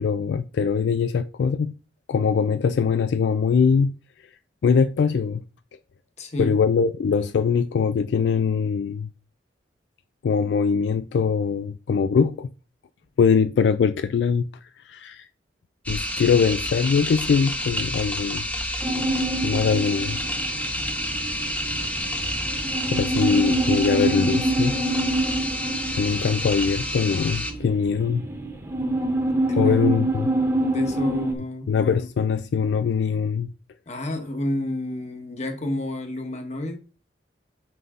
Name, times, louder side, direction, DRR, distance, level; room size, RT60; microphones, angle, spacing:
voice 1, 0.0-1.7 2.1-3.9 4.6-5.4 6.4-9.1 10.2-12.5 13.2-14.5 14.9-15.3 15.9-18.4 19.4-20.2 22.9-24.8 26.0-28.2 29.6-30.3 31.7-33.5, left 6 dB, 75° left, 0.3 m, -22 dB
voice 2, 6.2-6.6 29.2-30.2 30.6-31.7 33.9-36.8, left 1 dB, 40° left, 1.1 m, -30 dB
sound 1, 15.9-27.5, equal, 10° left, 0.7 m, -29 dB
sound 2, 18.8-31.3, right 1 dB, 15° right, 1.1 m, -26 dB
5.7 x 5.4 x 3.7 m
head